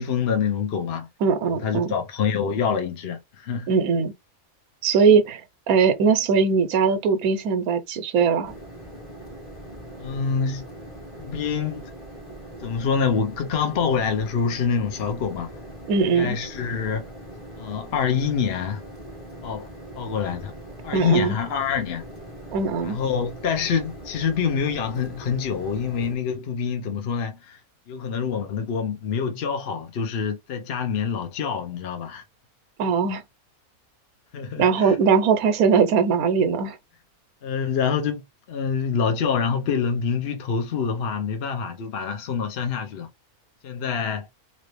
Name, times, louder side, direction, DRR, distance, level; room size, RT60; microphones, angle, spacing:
voice 1, 0.0-1.1 1.6-3.7 10.0-10.6 11.2-11.8 12.6-15.5 16.1-17.0 17.6-18.8 19.4-19.7 19.9-20.5 20.8-22.0 22.8-27.6 27.9-32.2 34.3-35.0 37.4-43.1 43.6-44.3, left 6 dB, 50° left, 0.9 m, -26 dB
voice 2, 1.2-2.0 3.7-4.1 4.8-5.4 5.7-8.5 15.9-16.4 20.9-21.4 22.5-23.0 32.8-33.2 34.6-36.8, right 5 dB, 80° right, 1.1 m, -20 dB
sound 1, 8.4-26.2, right 1 dB, 25° left, 1.1 m, -41 dB
3.0 x 2.8 x 3.1 m
omnidirectional pair, 1.5 m